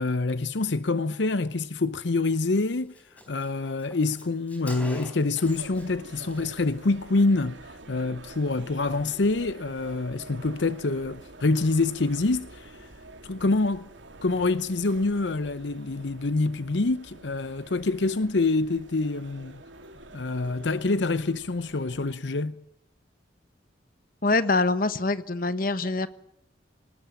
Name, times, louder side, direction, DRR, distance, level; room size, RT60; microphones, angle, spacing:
voice 1, 0.0-2.9 3.3-12.9 13.2-13.9 14.2-19.6 20.1-22.6, left 3 dB, 75° left, 0.8 m, -26 dB
Car, 2.2-2.4 2.7-2.8 2.9-5.9 6.2-6.4, left 1 dB, 10° left, 4.4 m, -44 dB
sound 1, 5.4-22.2, right 2 dB, 90° right, 2.6 m, -47 dB
voice 2, 24.2-26.1, left 3 dB, 50° left, 1.2 m, -24 dB
19.5 x 19.0 x 8.9 m
head